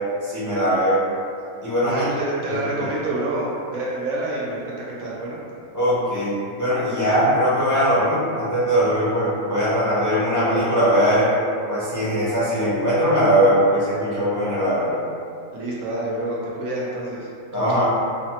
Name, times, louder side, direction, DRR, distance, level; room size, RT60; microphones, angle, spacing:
voice 1, 0.2-1.0 1.6-2.1 2.5-2.9 5.7-11.3 11.7-15.0 17.5-17.8, equal, 25° left, -11 dB, 0.4 m, -20 dB
voice 2, 1.9-5.4 15.5-17.3 17.6-17.8, right 2 dB, 90° right, -6 dB, 1.1 m, -28 dB
3.2 x 2.0 x 2.8 m, 2.5 s
omnidirectional pair, 1.4 m